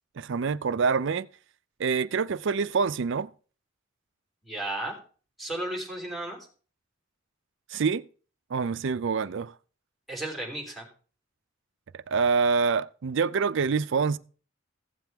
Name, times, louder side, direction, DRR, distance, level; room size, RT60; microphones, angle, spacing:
voice 1, 0.2-1.3 1.8-3.3 7.7-8.0 8.5-9.5 11.9-14.2, right 5 dB, 65° right, 0.5 m, -26 dB
voice 2, 4.4-5.0 5.4-6.4 10.1-10.9, right 1 dB, ahead, 3.4 m, -34 dB
15.5 x 7.5 x 3.5 m
head